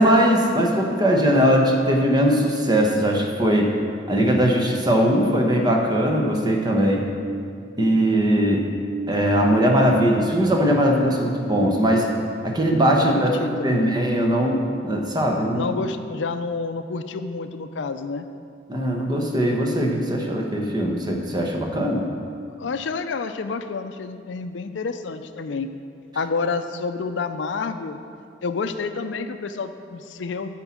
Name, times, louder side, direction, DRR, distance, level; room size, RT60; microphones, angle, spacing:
voice 1, 0.0-3.8 4.1-7.1 7.8-8.7 9.1-12.1 12.4-15.7 18.7-22.0, equal, 20° right, 1 dB, 1.0 m, -20 dB
voice 2, 13.0-13.9 15.5-18.3 22.6-25.7 26.1-28.0 28.4-30.5, left 4 dB, 75° left, 9 dB, 0.5 m, -29 dB
9.8 x 4.5 x 7.2 m, 2.3 s
head